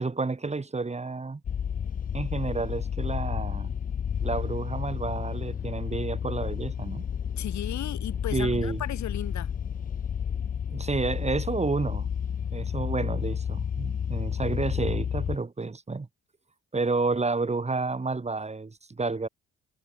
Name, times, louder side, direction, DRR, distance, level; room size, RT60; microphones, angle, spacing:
voice 1, 0.0-1.4 2.1-3.7 4.2-7.1 8.3-8.8 10.7-12.1 12.5-16.1 16.7-19.3, right 3 dB, 20° right, 2.1 m, -30 dB
sound 1, 1.4-15.4, left 8 dB, 30° left, 0.4 m, -31 dB
voice 2, 7.4-9.5, left 12 dB, 70° left, 1.6 m, -35 dB
cardioid pair, 90°, 30 cm